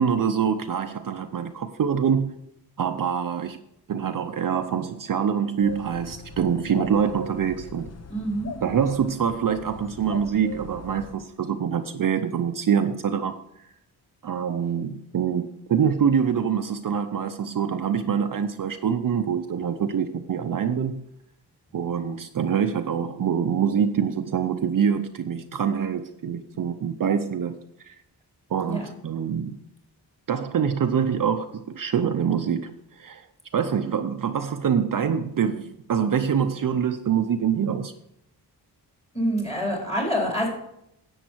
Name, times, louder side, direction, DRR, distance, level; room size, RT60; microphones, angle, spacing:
voice 1, 0.0-2.4 2.8-3.6 3.9-7.9 8.6-13.4 14.2-21.0 21.7-27.6 27.8-28.0 28.5-29.6 30.3-33.3 33.5-37.9, right 7 dB, 55° right, 7 dB, 0.7 m, -25 dB
sound 1, 5.6-11.1, left 2 dB, 40° left, 0.9 m, -40 dB
voice 2, 8.1-8.5 28.7-28.9 39.1-40.5, equal, 15° left, -2 dB, 4.2 m, -26 dB
10.5 x 8.1 x 4.6 m, 0.80 s
wide cardioid pair, 130°, 40 cm